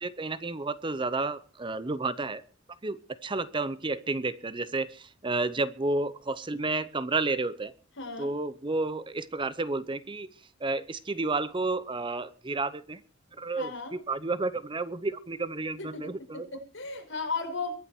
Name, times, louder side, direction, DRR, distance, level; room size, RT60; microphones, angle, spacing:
voice 1, 0.0-2.4 2.8-7.7 8.2-10.3 10.6-13.0 13.4-16.5, right 3 dB, 25° right, 15 dB, 0.8 m, -31 dB
voice 2, 8.0-8.3 13.6-14.0 15.8-17.7, left 4 dB, 65° left, 3 dB, 5.5 m, -36 dB
22.5 x 9.3 x 4.5 m, 0.37 s
head